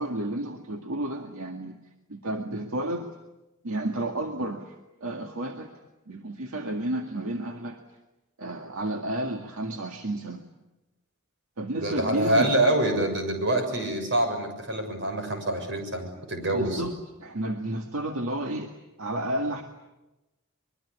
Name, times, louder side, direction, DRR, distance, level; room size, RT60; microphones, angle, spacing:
voice 1, 0.0-1.8 2.1-3.1 3.6-4.7 5.0-5.7 6.1-7.8 8.4-10.4 11.6-12.5 16.5-18.7 19.0-19.6, right 1 dB, 80° right, 4 dB, 2.0 m, -31 dB
voice 2, 11.8-16.8, right 1 dB, 60° right, 5 dB, 6.8 m, -26 dB
24.5 x 23.0 x 9.9 m, 1.0 s
head